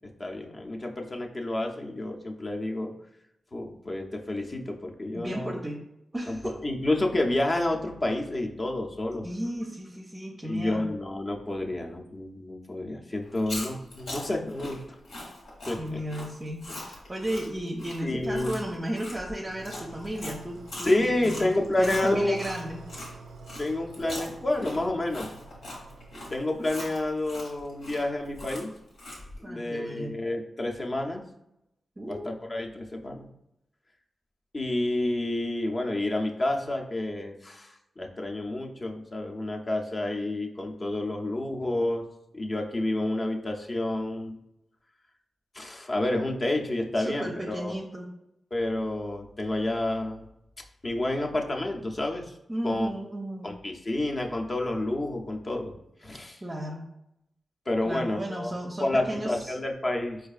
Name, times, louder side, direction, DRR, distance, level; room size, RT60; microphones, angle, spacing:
voice 1, 0.2-2.9 3.5-5.6 6.3-9.3 10.4-14.8 15.7-15.8 18.0-18.6 20.8-22.4 23.6-25.3 26.3-28.7 29.4-31.2 32.1-33.3 34.5-42.0 42.3-44.4 45.5-47.7 48.5-50.2 50.8-52.3 52.6-52.9 53.4-55.7 56.0-56.4 57.7-58.5 58.8-60.3, left 1 dB, 40° left, 1 dB, 0.5 m, -29 dB
voice 2, 5.1-5.8 6.1-6.5 9.2-10.9 15.8-22.8 29.4-30.1 32.0-32.2 47.0-48.1 52.5-53.5 56.4-56.8 57.9-59.6, right 1 dB, 25° right, 1 dB, 0.5 m, -34 dB
Chewing mastication, 13.3-23.1 23.5-29.4, left 1 dB, 85° left, 1.2 m, -41 dB
sound 1, 19.5-26.4, right 4 dB, 85° right, 0.3 m, -47 dB
4.6 x 2.4 x 2.4 m, 0.84 s
cardioid pair, 65°, 0 cm